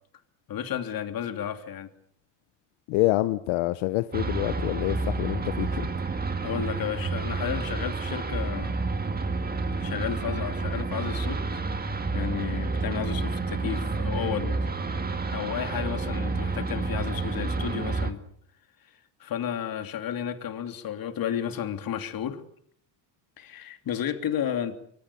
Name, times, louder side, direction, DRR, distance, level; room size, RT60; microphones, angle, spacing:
voice 1, 0.5-1.9 6.4-8.7 9.8-11.6 12.1-14.6 15.3-18.2 19.2-22.4 23.4-24.8, left 9 dB, 50° left, 3.1 m, -32 dB
voice 2, 2.9-5.8, left 18 dB, 85° left, 1.1 m, -26 dB
sound 1, 4.1-18.1, right 3 dB, 20° right, 2.0 m, -29 dB
25.0 x 24.0 x 7.0 m
cardioid pair, 125°, 46 cm